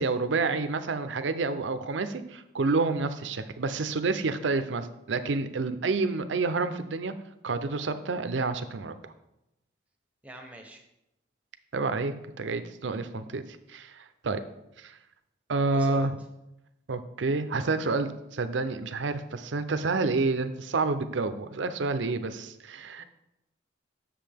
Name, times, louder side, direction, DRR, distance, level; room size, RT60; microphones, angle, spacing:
voice 1, 0.0-7.1 7.4-8.9 11.7-13.4 13.7-14.4 14.8-15.0 15.5-16.1 16.9-23.0, right 3 dB, 85° right, 10 dB, 0.6 m, -29 dB
voice 2, 10.2-10.8 15.6-16.1 22.7-23.0, right 1 dB, 10° right, 2 dB, 0.9 m, -45 dB
7.6 x 6.8 x 3.5 m, 0.88 s
head